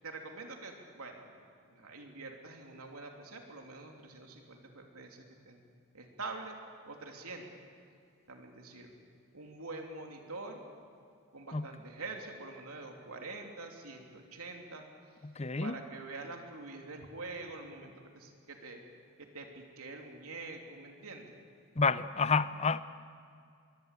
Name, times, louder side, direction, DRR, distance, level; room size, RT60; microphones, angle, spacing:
voice 1, 0.0-1.4 1.7-5.6 5.9-6.5 6.9-7.4 8.3-9.0 9.3-10.6 11.3-14.8 15.6-18.8 19.3-21.4, right 3 dB, 85° right, 2 dB, 3.1 m, -45 dB
voice 2, 15.2-15.7 21.8-22.8, left 4 dB, 30° left, 14 dB, 0.7 m, -29 dB
23.0 x 22.5 x 8.4 m, 2.4 s
head